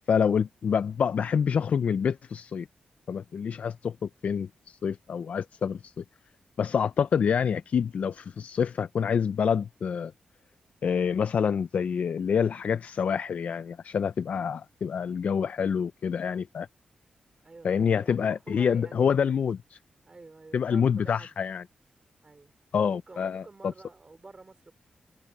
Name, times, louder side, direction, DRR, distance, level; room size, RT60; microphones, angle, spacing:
voice 1, 0.1-2.7 3.1-6.0 6.6-10.1 10.8-16.7 17.6-19.8 20.5-21.6 22.7-23.7, left 7 dB, 65° left, 0.5 m, -27 dB
voice 2, 17.4-19.1 20.0-21.3 22.2-22.5 22.8-24.7, right 3 dB, 30° right, 3.2 m, -49 dB
wide cardioid pair, 100°, 3 cm